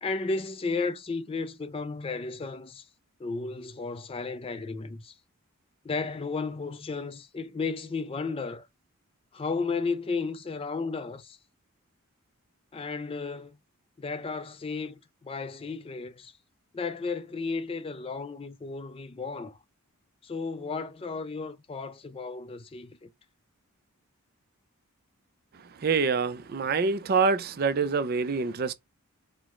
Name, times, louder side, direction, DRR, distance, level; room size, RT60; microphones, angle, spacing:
voice 1, 0.0-2.9 3.2-5.2 5.8-8.7 9.3-11.4 12.7-13.6 14.0-16.4 16.7-19.6 20.2-23.1, left 4 dB, 25° left, 0.3 m, -34 dB
voice 2, 25.8-28.7, right 5 dB, 45° right, 0.4 m, -26 dB
4.6 x 2.1 x 3.6 m
head